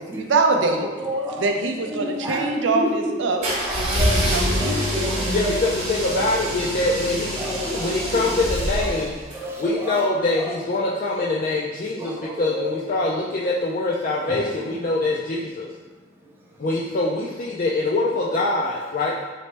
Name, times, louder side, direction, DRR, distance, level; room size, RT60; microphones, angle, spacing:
voice 1, 0.0-0.9 1.4-3.4 3.7-5.0, right 3 dB, 80° right, 4 dB, 0.5 m, -24 dB
voice 2, 0.6-1.4 1.9-4.3 4.6-5.5 6.2-6.3 7.4-8.3 8.8-9.1 9.3-10.0 10.4-10.5 11.9-12.7 14.2-14.4, left 1 dB, 10° right, -3 dB, 0.5 m, -30 dB
sound 1, 3.4-9.4, equal, 35° right, 1.0 m, -25 dB
voice 3, 5.3-7.3 7.7-9.2 9.6-15.7 16.6-19.2, left 2 dB, 45° left, -4 dB, 0.3 m, -24 dB
4.1 x 3.0 x 3.2 m, 1.3 s
head